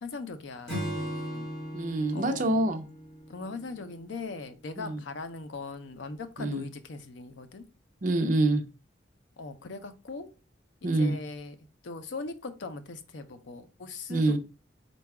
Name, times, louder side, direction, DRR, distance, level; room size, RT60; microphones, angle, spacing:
voice 1, 0.0-1.5 2.1-2.6 3.3-7.6 9.4-10.3 10.8-11.6 11.8-14.4, left 3 dB, 70° left, 0.5 m, -40 dB
Acoustic guitar / Strum, 0.7-4.2, equal, 20° left, 2.1 m, -38 dB
voice 2, 1.7-2.8 4.8-5.0 6.4-6.6 8.0-8.6 10.8-11.1 14.1-14.4, right 2 dB, 45° right, 0.5 m, -26 dB
4.0 x 2.3 x 4.5 m
head